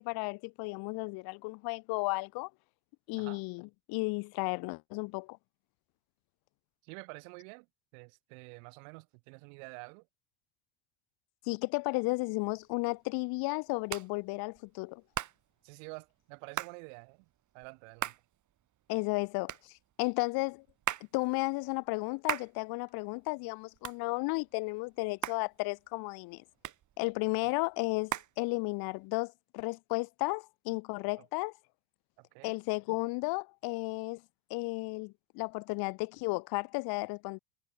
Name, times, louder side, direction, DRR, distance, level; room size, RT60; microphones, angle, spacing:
voice 1, 0.0-2.5 3.1-5.4 11.5-15.0 18.9-20.6 21.1-26.4 27.0-31.5 32.4-34.2 34.5-37.4, left 26 dB, 60° left, 1.2 m, -34 dB
voice 2, 6.8-7.7 7.9-10.1 15.6-17.3 17.5-18.2 31.2-31.3 32.2-32.6, right 38 dB, 70° right, 4.2 m, -48 dB
Hands, 12.4-29.1, right 12 dB, 45° right, 4.2 m, -42 dB
hypercardioid pair, 95°, 42 cm